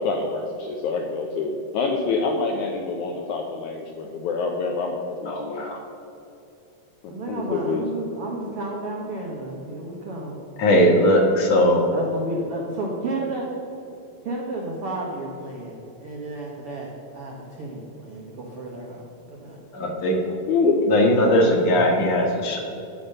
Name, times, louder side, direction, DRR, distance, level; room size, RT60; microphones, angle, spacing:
voice 1, 0.0-5.7 7.0-7.8 19.8-20.0 20.3-20.9, left 4 dB, 85° left, 2 dB, 1.7 m, -26 dB
voice 2, 5.3-5.8 10.6-11.8 19.7-20.3 20.9-22.6, equal, 60° left, 1 dB, 1.9 m, -19 dB
voice 3, 7.1-10.4 11.9-13.5 14.2-19.6, right 2 dB, 75° right, -2 dB, 1.3 m, -32 dB
13.0 x 5.9 x 6.6 m, 2.8 s
omnidirectional pair, 4.4 m